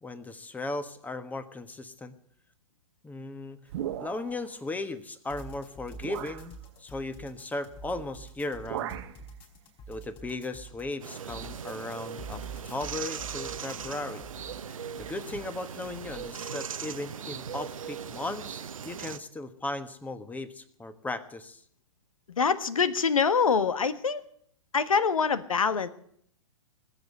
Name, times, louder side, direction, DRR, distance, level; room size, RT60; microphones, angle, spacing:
voice 1, 0.0-2.1 3.0-3.6 4.0-8.9 9.9-14.2 15.0-21.6, left 2 dB, 10° left, 12 dB, 1.2 m, -37 dB
sound 1, 3.7-4.5 5.4-5.5 6.0-6.5 7.9-8.1 8.4-9.2, right 11 dB, 55° right, 1.3 m, -37 dB
sound 2, 5.3-16.3, right 3 dB, 30° left, 4.9 m, -46 dB
sound 3, 11.0-19.2, right 7 dB, 75° right, 0.9 m, -39 dB
voice 2, 22.3-24.2 24.7-25.9, left 5 dB, 80° left, 14 dB, 1.3 m, -25 dB
20.0 x 8.1 x 7.9 m, 0.64 s
hypercardioid pair, 115°, 17 cm